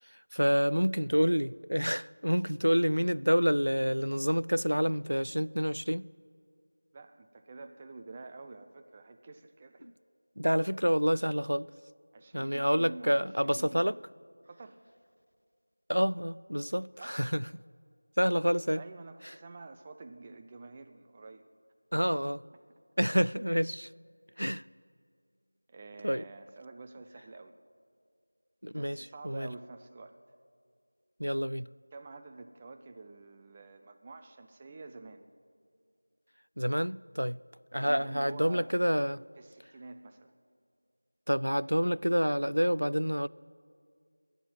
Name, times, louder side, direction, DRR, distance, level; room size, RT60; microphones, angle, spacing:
voice 1, 0.3-6.1 9.8-9.9 10.4-11.7 12.3-14.0 15.9-17.5 18.2-18.8 21.9-22.4 23.0-23.9 24.4-24.6 26.0-26.2 28.6-29.5 31.2-31.7 36.6-37.4 37.7-39.2 41.3-43.3, equal, 90° right, 0.3 m, -28 dB
voice 2, 6.9-9.9 12.1-13.8 14.5-14.8 17.0-17.2 18.8-21.4 25.7-27.5 28.7-30.1 31.9-35.2 37.7-38.9 39.4-40.3, right 3 dB, 10° right, 0.4 m, -48 dB
14.5 x 10.5 x 9.5 m
figure-of-eight pair, 175°, 0 cm